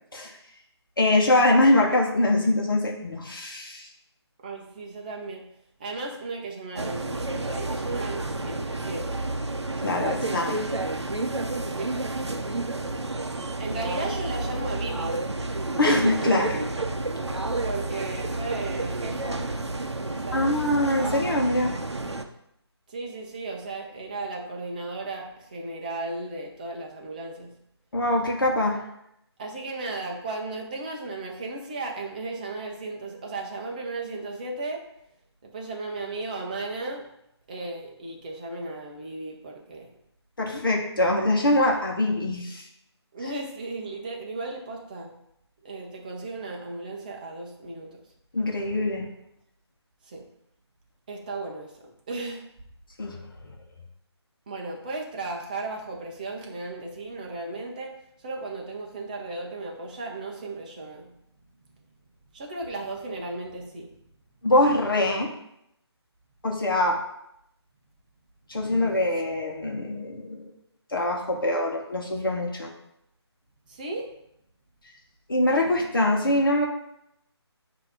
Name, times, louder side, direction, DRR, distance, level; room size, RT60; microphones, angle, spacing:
voice 1, 1.0-3.9 9.8-10.6 15.8-16.6 17.2-17.4 20.3-21.7 27.9-28.8 40.4-42.6 48.3-49.1 53.0-53.2 53.4-53.5 64.4-65.3 66.4-67.0 68.5-70.5 70.9-72.7 75.3-76.7, left 1 dB, 50° left, 0 dB, 1.1 m, -23 dB
voice 2, 4.4-5.5 5.8-9.2 11.7-11.9 13.6-15.2 16.2-16.7 17.6-19.5 20.0-20.6 22.9-27.5 29.4-34.8 35.4-37.1 37.5-39.9 43.1-45.1 45.6-48.0 50.0-50.2 51.1-51.8 52.1-52.5 54.5-61.1 62.3-64.0 73.7-74.1, right 2 dB, 20° right, 0 dB, 0.7 m, -35 dB
sound 1, 6.8-22.2, right 2 dB, 80° right, 0.7 m, -30 dB
7.6 x 2.8 x 5.0 m, 0.78 s
figure-of-eight pair, 155°, 14 cm